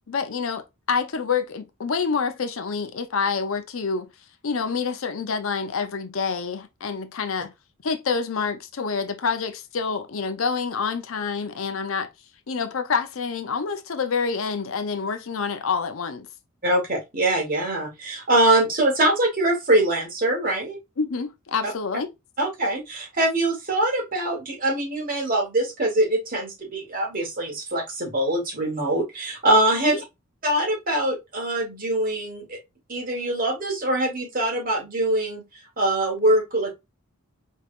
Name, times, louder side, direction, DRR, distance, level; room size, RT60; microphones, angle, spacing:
voice 1, 0.1-4.1 4.4-7.5 7.8-12.1 12.5-16.3 21.0-22.1 29.9-30.0, left 5 dB, 65° left, 0.6 m, -27 dB
voice 2, 16.6-20.8 21.6-21.7 22.4-30.0 30.4-32.6 32.9-35.4 35.8-36.7, right 1 dB, 40° right, 1.7 m, -23 dB
4.4 x 3.3 x 2.5 m
head